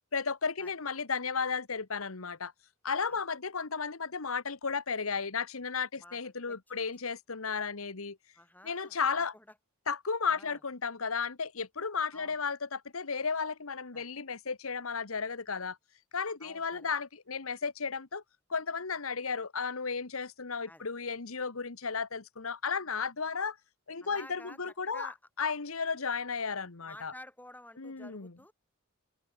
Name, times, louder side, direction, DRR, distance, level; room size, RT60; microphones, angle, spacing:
voice 1, 0.1-2.5 2.8-8.2 8.6-9.3 9.9-15.8 16.1-18.2 18.5-23.6 23.9-25.1 25.4-27.1 27.8-28.3, left 5 dB, 80° left, 1.4 m, -34 dB
voice 2, 6.0-6.9 8.3-9.5 10.3-10.6 12.1-12.4 13.9-14.1 16.4-16.9 20.7-20.9 24.0-25.2 26.8-28.5, left 1 dB, 10° left, 6.8 m, -52 dB
head